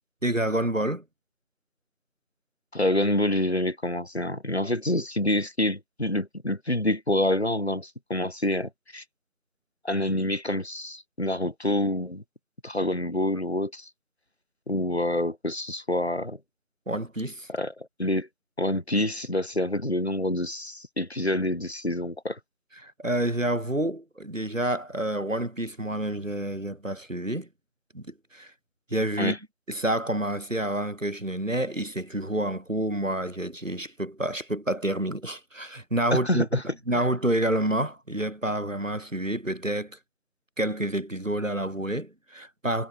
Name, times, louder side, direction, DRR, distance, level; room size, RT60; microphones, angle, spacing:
voice 1, 0.2-1.0 16.9-17.5 22.8-27.5 27.9-28.5 28.9-29.4 29.7-40.0 40.6-42.9, right 1 dB, 65° right, 3.8 m, -28 dB
voice 2, 2.7-9.0 9.8-12.2 12.6-13.9 14.7-16.4 17.5-18.3 18.6-22.4 29.2-29.4 36.1-36.6, left 1 dB, 50° left, 1.6 m, -27 dB
figure-of-eight pair, 180°, 42 cm